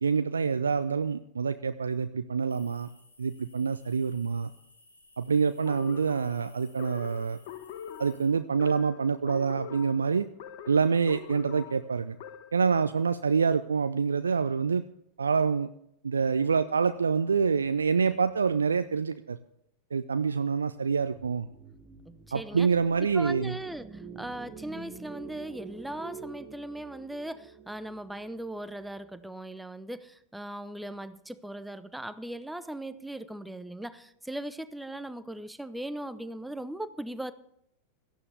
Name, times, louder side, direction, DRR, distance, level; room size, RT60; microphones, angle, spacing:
voice 1, 0.0-2.9 3.2-4.5 5.2-7.4 8.0-10.3 10.7-12.2 12.5-14.8 15.2-15.7 16.0-19.4 19.9-21.5 22.3-23.6, right 5 dB, 75° right, 0.5 m, -26 dB
sound 1, 2.5-8.2, left 2 dB, 80° left, 3.9 m, -59 dB
sound 2, 5.7-12.7, left 9 dB, 50° left, 1.2 m, -44 dB
sound 3, 21.0-29.3, right 6 dB, 25° right, 1.3 m, -47 dB
voice 2, 22.1-22.7 23.1-37.3, right 1 dB, 5° right, 0.8 m, -39 dB
17.5 x 13.0 x 3.5 m
figure-of-eight pair, 90°, 0 cm